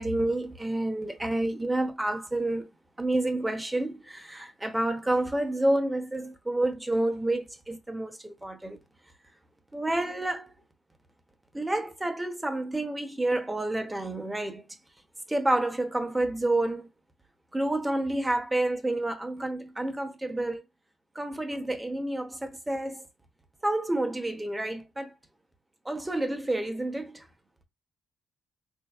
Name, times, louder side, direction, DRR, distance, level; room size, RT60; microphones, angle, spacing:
voice 1, 0.0-2.7 3.0-8.8 9.7-10.5 11.5-14.6 15.3-16.9 17.5-20.6 21.1-23.1 23.6-25.1 25.8-27.3, right 1 dB, 10° right, 0.8 m, -29 dB
3.7 x 2.6 x 2.4 m
cardioid pair, 90°, 0 cm